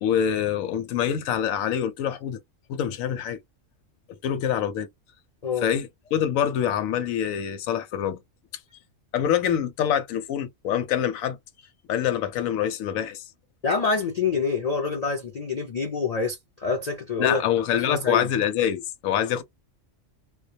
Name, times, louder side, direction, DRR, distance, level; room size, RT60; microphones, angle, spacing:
voice 1, 0.0-2.4 2.7-3.4 4.1-4.9 5.6-8.2 9.1-11.4 11.9-13.3 17.2-19.4, left 9 dB, 90° left, 1.0 m, -25 dB
voice 2, 13.6-17.4 17.7-18.3, left 4 dB, 55° left, 0.4 m, -26 dB
2.2 x 2.2 x 2.6 m
omnidirectional pair, 1.4 m